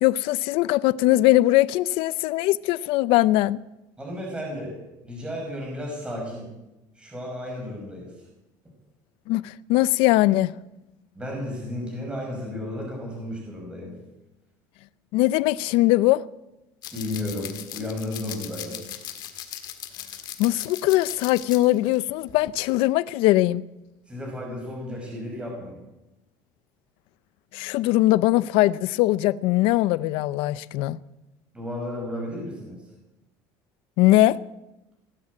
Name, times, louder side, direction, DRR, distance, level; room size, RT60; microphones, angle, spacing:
voice 1, 0.0-3.6 9.3-10.5 15.1-16.2 20.4-23.6 27.5-31.0 34.0-34.4, left 17 dB, 70° left, 0.5 m, -21 dB
voice 2, 4.0-4.7 5.0-6.5 7.0-8.1 11.2-13.9 16.9-18.8 24.1-25.8 31.5-32.8, left 1 dB, 10° right, 5.4 m, -33 dB
sound 1, 16.8-22.0 22.3-22.5, left 11 dB, 50° left, 1.8 m, -38 dB
17.5 x 9.8 x 8.3 m
cardioid pair, 160°, 10 cm